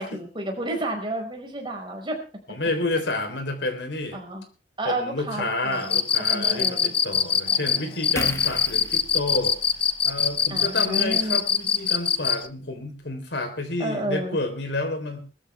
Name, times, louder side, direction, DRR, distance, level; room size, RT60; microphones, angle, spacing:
voice 1, 0.0-2.2 4.1-4.4 4.8-7.0 7.5-8.4 10.5-11.4 13.8-14.4, right 1 dB, 30° right, 2 dB, 5.2 m, -31 dB
voice 2, 2.5-4.2 4.8-9.6 10.0-15.2, left 2 dB, 70° left, 6 dB, 3.8 m, -29 dB
Cricket, 5.8-12.4, left 7 dB, 30° left, 0.8 m, -22 dB
sound 1, 8.2-11.5 11.9-12.1, left 2 dB, 15° left, 1.4 m, -38 dB
20.0 x 14.0 x 3.5 m, 0.36 s
head